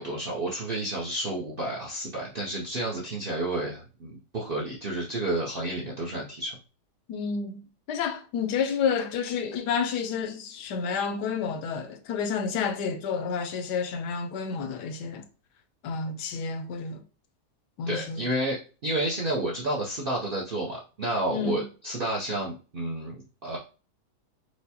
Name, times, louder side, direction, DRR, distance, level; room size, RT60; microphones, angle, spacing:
voice 1, 0.0-6.5 17.9-23.6, right 1 dB, 65° right, 0.5 m, -30 dB
voice 2, 7.1-15.2 15.8-17.0 17.8-18.2 21.3-21.6, left 6 dB, 80° left, 1.2 m, -30 dB
4.6 x 2.1 x 2.7 m
omnidirectional pair, 1.8 m